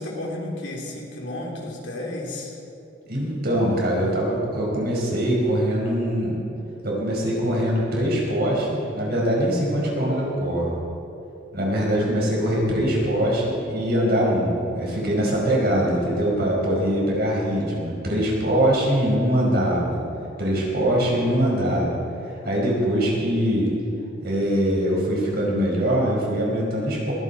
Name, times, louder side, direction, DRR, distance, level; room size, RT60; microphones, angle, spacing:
voice 1, 0.0-2.6, left 1 dB, 60° left, -2 dB, 3.3 m, -32 dB
voice 2, 3.1-6.4 6.8-10.8 11.5-20.0 20.4-22.0 22.4-23.7 24.2-27.1, equal, 50° right, -3 dB, 4.8 m, -22 dB
22.0 x 14.5 x 4.3 m, 2.9 s
head